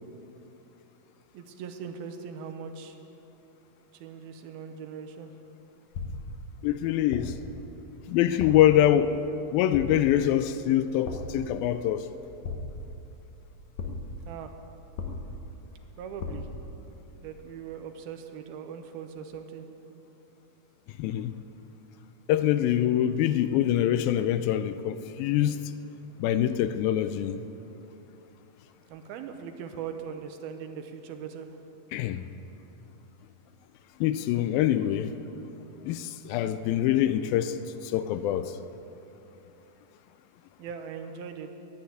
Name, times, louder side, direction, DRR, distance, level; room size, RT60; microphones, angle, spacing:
voice 1, 1.3-3.0 3.9-5.3 14.3-14.5 16.0-16.5 17.1-19.7 28.9-31.6 40.6-41.5, right 7 dB, 80° right, 6 dB, 2.8 m, -40 dB
sound 1, 5.9-6.4 7.1-7.5 8.4-8.8 9.7-10.2 11.1-11.5 12.4-13.0 13.8-14.2 15.0-15.5 16.2-16.6, left 3 dB, 65° left, 2.3 m, -36 dB
voice 2, 6.6-7.4 8.1-9.2 9.5-12.1 21.0-21.4 22.3-25.6 26.2-27.4 31.9-32.3 34.0-35.1 35.8-38.5, left 11 dB, 80° left, 11 dB, 2.3 m, -24 dB
11.5 x 10.5 x 9.3 m, 2.9 s
omnidirectional pair, 4.3 m